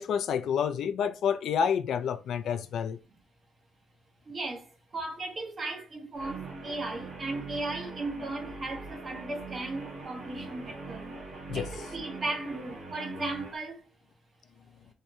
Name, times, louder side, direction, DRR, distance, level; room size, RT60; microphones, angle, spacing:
voice 1, 0.0-3.0 11.5-11.7, left 7 dB, 65° left, 0.3 m, -29 dB
voice 2, 4.3-11.1 11.5-13.8, right 2 dB, 35° right, 0.8 m, -36 dB
Guitar, 6.1-13.6, right 2 dB, 60° right, 1.7 m, -41 dB
3.6 x 2.1 x 2.8 m
cardioid pair, 105°, 0 cm